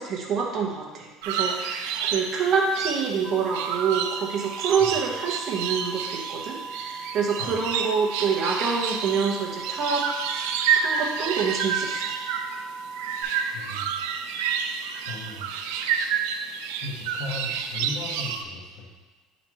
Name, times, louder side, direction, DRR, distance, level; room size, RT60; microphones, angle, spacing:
voice 1, 0.0-10.0 10.8-12.1, right 5 dB, 40° right, -2 dB, 1.1 m, -27 dB
sound 1, 1.2-18.4, right 7 dB, 85° right, 0.5 m, -29 dB
sound 2, 3.2-13.2, right 4 dB, 60° right, 1.5 m, -38 dB
voice 2, 13.5-13.9 15.0-15.5 16.8-19.0, left 2 dB, 55° left, -2 dB, 1.4 m, -37 dB
9.0 x 4.1 x 3.1 m, 1.2 s
cardioid pair, 160°, 0 cm